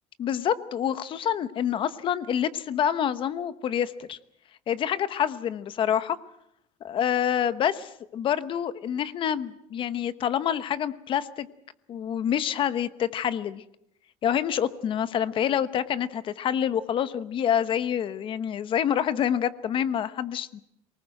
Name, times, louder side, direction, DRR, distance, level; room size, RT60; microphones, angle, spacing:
voice 1, 0.2-4.2 4.7-6.2 6.8-11.5 11.9-13.6 14.2-20.6, left 9 dB, 35° left, 14 dB, 1.0 m, -27 dB
23.5 x 19.5 x 7.7 m, 0.75 s
cardioid pair, 170°, 14 cm